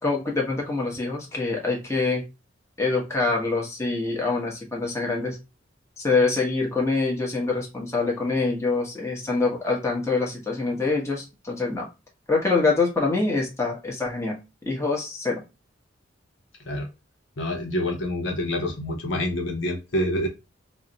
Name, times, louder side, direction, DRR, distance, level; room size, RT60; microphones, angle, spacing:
voice 1, 0.0-2.2 2.8-5.4 6.0-11.9 12.3-15.4, left 3 dB, 15° left, -1 dB, 1.0 m, -25 dB
voice 2, 17.4-20.3, left 1 dB, 65° left, 2 dB, 0.8 m, -27 dB
3.1 x 2.5 x 4.0 m, 0.26 s
head